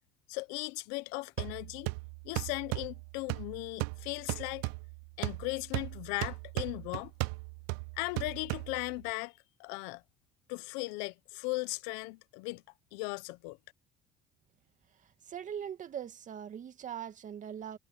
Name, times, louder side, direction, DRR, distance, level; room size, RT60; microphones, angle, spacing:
voice 1, 0.3-1.9 2.2-4.6 5.2-7.1 8.0-9.3 9.6-10.0 10.5-12.6 12.9-13.6, left 24 dB, 80° left, 1.0 m, -37 dB
sound 1, 1.4-9.1, right 29 dB, 80° right, 0.4 m, -38 dB
voice 2, 15.0-17.8, right 9 dB, 50° right, 2.5 m, -41 dB
supercardioid pair, 75°, 17 cm